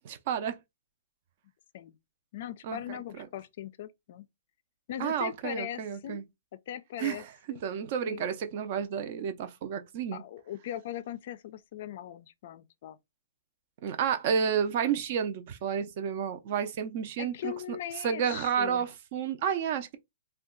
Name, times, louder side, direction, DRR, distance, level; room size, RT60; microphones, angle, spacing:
voice 1, 0.0-0.6 2.6-3.3 5.0-6.2 7.0-7.3 7.6-10.2 13.8-20.0, right 8 dB, 40° right, 0.6 m, -31 dB
voice 2, 2.3-4.3 4.9-6.2 6.7-7.2 7.5-7.6 8.1-8.3 10.1-13.0 17.2-18.9, left 11 dB, 50° left, 0.4 m, -39 dB
2.6 x 2.2 x 3.7 m
hypercardioid pair, 155°, 0 cm